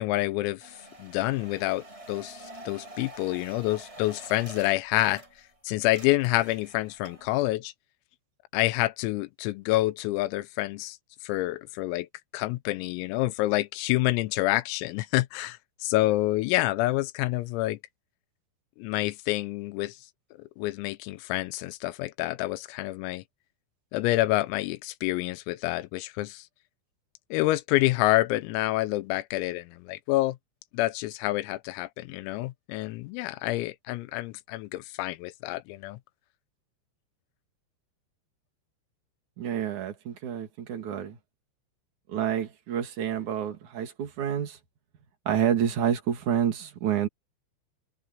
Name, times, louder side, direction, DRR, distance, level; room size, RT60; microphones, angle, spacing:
voice 1, 0.0-5.2 5.7-7.7 8.5-11.0 11.2-12.1 12.3-17.8 18.8-20.0 20.6-23.2 23.9-26.5 27.3-30.4 30.7-36.0, left 18 dB, 90° left, 3.6 m, -28 dB
sound 1, 0.6-5.6 5.8-7.3, right 1 dB, 10° right, 6.1 m, -47 dB
voice 2, 39.4-41.2 42.1-44.6 45.2-47.1, right 9 dB, 45° right, 3.1 m, -28 dB
omnidirectional pair, 6.0 m